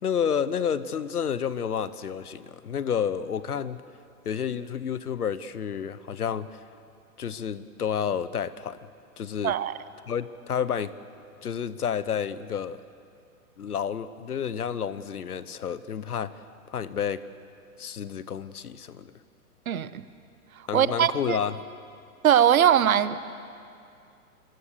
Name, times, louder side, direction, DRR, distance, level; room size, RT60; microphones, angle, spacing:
voice 1, 0.0-3.8 4.2-6.6 7.2-8.8 9.2-9.6 10.1-10.9 11.4-12.8 13.6-16.3 16.7-17.2 17.8-19.1 20.7-21.6, left 8 dB, 75° left, 16 dB, 1.2 m, -30 dB
voice 2, 19.7-20.0 20.7-21.4 22.2-23.3, right 9 dB, 65° right, 14 dB, 1.3 m, -21 dB
28.0 x 23.0 x 6.7 m, 2.4 s
figure-of-eight pair, 120°, 46 cm